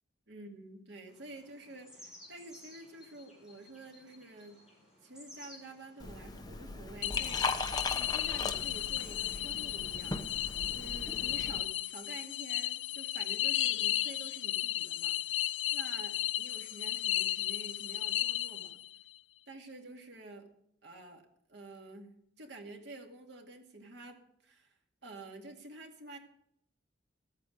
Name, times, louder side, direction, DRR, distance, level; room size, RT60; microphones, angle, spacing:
voice 1, 0.3-4.6 5.0-7.6 7.9-10.3 10.7-15.2 15.7-18.8 19.5-20.5 20.8-21.2 21.5-22.1 22.4-24.7 25.0-26.2, right 2 dB, 65° right, 3 dB, 2.3 m, -49 dB
sound 1, 1.1-6.4, left 1 dB, 5° right, 6.0 m, -56 dB
Liquid, 6.0-11.6, left 3 dB, 20° left, 0.9 m, -38 dB
sound 2, 7.0-19.0, left 14 dB, 85° left, 0.5 m, -34 dB
14.0 x 8.7 x 6.5 m, 0.73 s
head